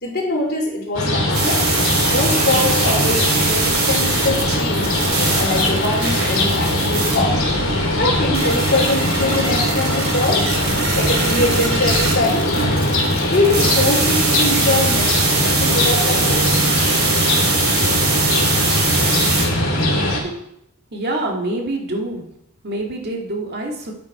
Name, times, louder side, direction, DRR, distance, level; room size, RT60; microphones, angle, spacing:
voice 1, 0.0-1.6 2.1-5.0 5.4-7.4 8.0-10.5 11.0-12.5 13.3-16.6, left 2 dB, 45° left, -2 dB, 3.4 m, -23 dB
sound 1, 0.9-20.2, left 1 dB, 65° left, 3.0 m, -20 dB
sound 2, 1.3-19.4, right 4 dB, 75° right, 2.7 m, -22 dB
voice 2, 20.0-20.4 20.9-22.3 22.6-23.9, right 1 dB, 50° right, 1 dB, 1.9 m, -26 dB
9.2 x 8.9 x 4.7 m, 0.77 s
head